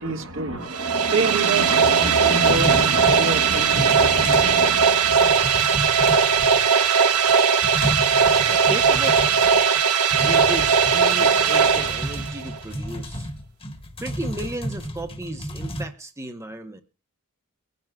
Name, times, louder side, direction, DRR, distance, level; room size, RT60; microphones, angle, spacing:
voice 1, 0.0-5.9, right 3 dB, 60° right, 1.6 m, -27 dB
sound 1, 0.7-12.6, right 6 dB, 90° right, 1.2 m, -19 dB
sound 2, 2.4-4.6 4.9-6.9 7.3-7.4 7.6-9.8 10.1-15.8, equal, 25° left, 1.3 m, -32 dB
voice 2, 8.5-9.5 10.1-13.3 14.0-16.8, right 1 dB, 15° right, 0.7 m, -34 dB
23.0 x 10.5 x 2.2 m
head